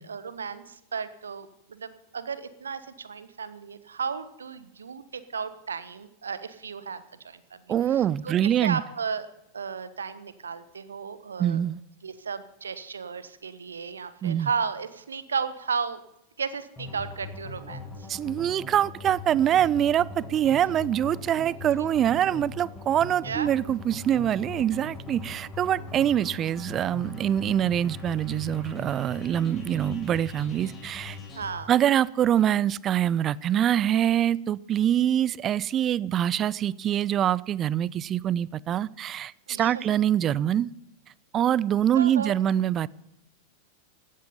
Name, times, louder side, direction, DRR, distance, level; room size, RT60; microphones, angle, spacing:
voice 1, 0.0-9.3 9.5-11.6 12.0-16.0 16.4-18.1 21.7-21.9 23.2-23.5 24.5-24.6 31.3-31.7 39.5-39.8 41.9-42.3, right 6 dB, 70° right, 1.2 m, -34 dB
voice 2, 7.7-8.8 11.4-11.8 14.2-14.5 18.1-31.2 31.7-40.7 41.3-42.9, right 10 dB, 30° right, 0.5 m, -24 dB
sound 1, 16.8-31.5, left 4 dB, 20° left, 7.0 m, -40 dB
16.5 x 13.0 x 5.6 m
figure-of-eight pair, 90°, 0 cm